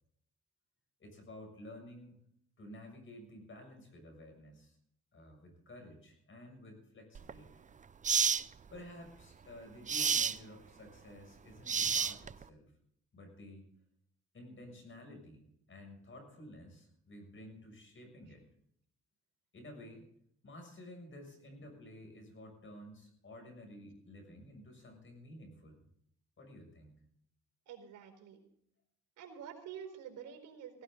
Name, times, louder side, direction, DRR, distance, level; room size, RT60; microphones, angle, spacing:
voice 1, 1.0-2.2 2.6-4.8 5.1-7.7 8.7-12.7 13.1-13.7 14.3-18.4 19.5-20.1 20.4-25.8 26.4-26.9, left 1 dB, 40° left, 4 dB, 6.9 m, -52 dB
sound 1, 7.2-7.3 8.0-8.4 9.9-10.4 11.7-12.4, right 6 dB, 25° right, 0.5 m, -30 dB
voice 2, 27.7-28.4 29.2-30.8, right 8 dB, 85° right, 4 dB, 4.4 m, -48 dB
17.5 x 17.0 x 3.9 m, 0.68 s
cardioid pair, 90°, 30 cm